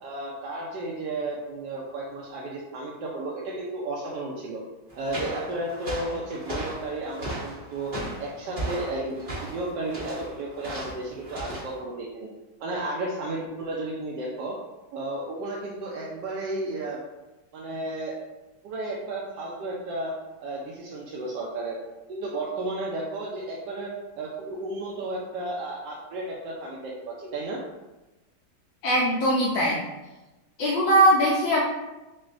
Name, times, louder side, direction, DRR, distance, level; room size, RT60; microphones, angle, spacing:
voice 1, 0.0-4.6 5.0-7.9 8.2-12.3 12.6-14.6 14.9-17.0 17.5-18.2 18.6-20.1 20.4-21.8 22.1-23.9 24.2-27.6, right 2 dB, 70° right, -4 dB, 1.1 m, -33 dB
sound 1, 4.9-11.8, right 1 dB, 45° right, 0.7 m, -36 dB
voice 2, 28.8-29.8 30.6-31.6, right 1 dB, 70° left, -5 dB, 1.2 m, -20 dB
6.1 x 2.1 x 2.5 m, 1.1 s
omnidirectional pair, 2.2 m